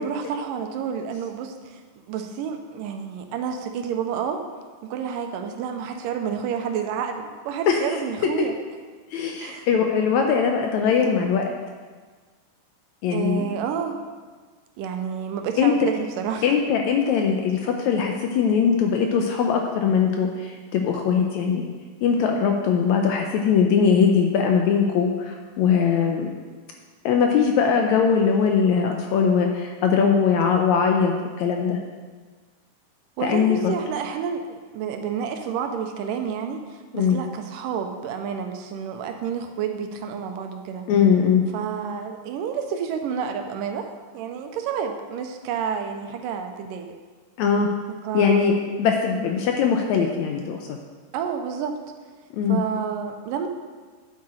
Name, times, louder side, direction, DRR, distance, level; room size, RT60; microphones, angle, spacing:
voice 1, 0.0-1.8 2.1-4.4 4.8-8.6 9.4-9.7 13.1-14.0 14.8-16.5 33.2-40.9 41.5-47.0 47.9-48.7 51.1-51.8 52.5-53.5, right 7 dB, 85° right, 5 dB, 2.4 m, -29 dB
voice 2, 9.1-11.4 13.0-13.5 15.6-15.9 16.4-21.7 22.0-26.4 27.0-31.8 33.2-33.7 36.9-37.2 40.9-41.4 47.4-47.7 48.1-50.7 52.3-52.6, left 6 dB, 80° left, 2 dB, 1.8 m, -21 dB
9.8 x 7.6 x 4.3 m, 1.5 s
omnidirectional pair, 3.8 m